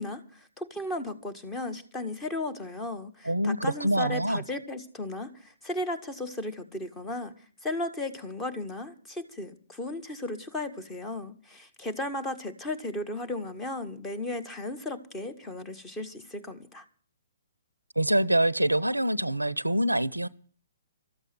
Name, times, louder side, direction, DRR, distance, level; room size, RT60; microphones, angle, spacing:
voice 1, 0.0-7.3 7.6-16.8, left 2 dB, 15° left, 1.7 m, -35 dB
voice 2, 3.2-4.4 18.0-20.3, right 1 dB, 90° right, 0.6 m, -25 dB
13.5 x 8.1 x 9.3 m
figure-of-eight pair, 125°, 0 cm